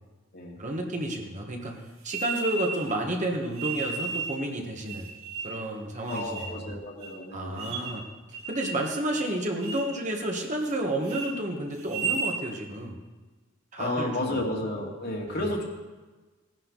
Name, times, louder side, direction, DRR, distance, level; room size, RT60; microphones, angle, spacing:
voice 1, 0.6-5.1 5.4-6.7 7.3-13.0 13.7-14.4 15.3-15.4, right 1 dB, 35° right, 1 dB, 1.6 m, -31 dB
sound 1, 2.1-2.9 3.6-4.4 4.9-5.6 6.1-6.6 7.0-7.1 7.6-8.0 8.3-8.8 9.1-9.3 9.6-9.9 10.3-10.8 11.0-11.3 11.8-12.4, right 5 dB, 85° right, 2.8 m, -34 dB
voice 2, 6.1-7.8 13.8-15.6, left 1 dB, 50° left, -2 dB, 2.5 m, -32 dB
17.5 x 11.0 x 4.1 m, 1.3 s
head